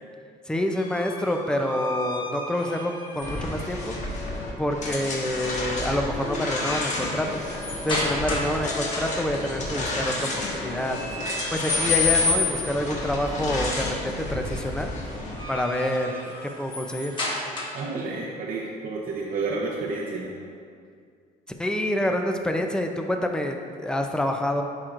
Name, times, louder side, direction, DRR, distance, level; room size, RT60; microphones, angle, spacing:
voice 1, 0.5-4.0 4.6-7.4 7.8-11.0 11.5-14.9 15.5-17.1 21.6-24.6, left 1 dB, 5° left, 3 dB, 0.5 m, -27 dB
sound 1, 0.7-3.6 5.4-5.7 6.2-8.6 8.9-9.4 10.9-12.8 15.1-18.0, left 3 dB, 30° left, 1.5 m, -30 dB
sound 2, 3.2-15.4, left 1 dB, 45° left, 1.4 m, -31 dB
sound 3, 8.6-10.4, left 6 dB, 75° left, 0.8 m, -42 dB
voice 2, 17.7-20.4, right 3 dB, 55° right, -4 dB, 0.8 m, -30 dB
11.0 x 4.5 x 2.5 m, 2.2 s
cardioid pair, 110°, 17 cm